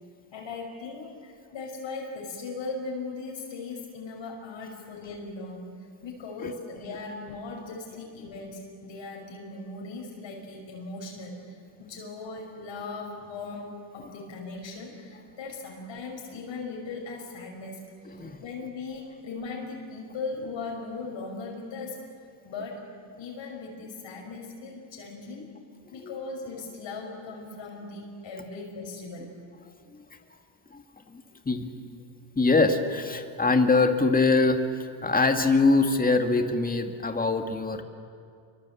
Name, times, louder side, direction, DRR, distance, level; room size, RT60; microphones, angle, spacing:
voice 1, 0.3-5.7 6.0-22.0 22.4-22.8 23.2-25.5 25.9-29.3, left 3 dB, 60° left, -1 dB, 6.0 m, -38 dB
voice 2, 31.1-32.0 32.4-37.8, left 3 dB, 15° left, 5 dB, 2.2 m, -23 dB
27.5 x 24.5 x 8.6 m, 2.3 s
cardioid pair, 110°, 50 cm